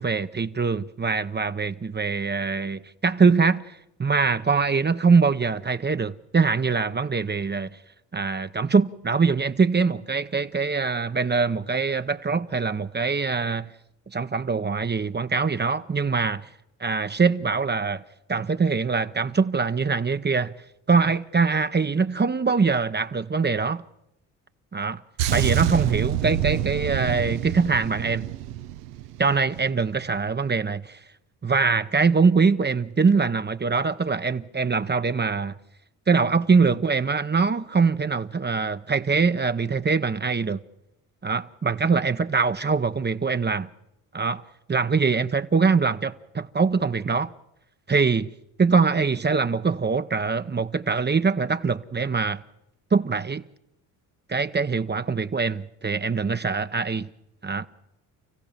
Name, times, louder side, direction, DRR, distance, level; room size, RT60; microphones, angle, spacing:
voice 1, 0.0-7.8 8.1-13.7 14.1-16.5 16.8-18.0 18.3-20.5 20.9-23.8 24.7-25.0 25.3-28.3 29.2-31.0 31.4-35.6 36.1-40.6 41.2-43.7 44.1-44.4 44.7-47.3 47.9-48.3 48.6-52.4 52.9-53.4 54.3-57.1 57.4-57.7, right 4 dB, 25° right, 0.9 m, -23 dB
sound 1, 25.2-29.7 30.0-30.3, right 12 dB, 80° right, 0.9 m, -27 dB
30.0 x 15.5 x 7.4 m
hypercardioid pair, 55°, 45 cm